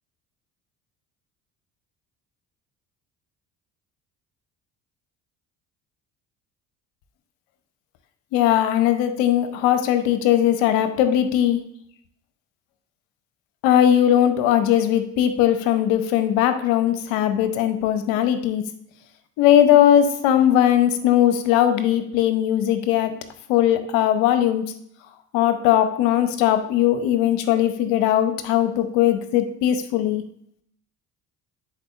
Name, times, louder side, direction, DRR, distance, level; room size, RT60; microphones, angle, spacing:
voice 1, 8.3-11.6 13.6-18.6 19.4-23.1 23.5-24.6 25.3-30.2, left 11 dB, 70° left, 9 dB, 0.9 m, -19 dB
10.0 x 4.5 x 2.5 m, 0.70 s
hypercardioid pair, 55°, 47 cm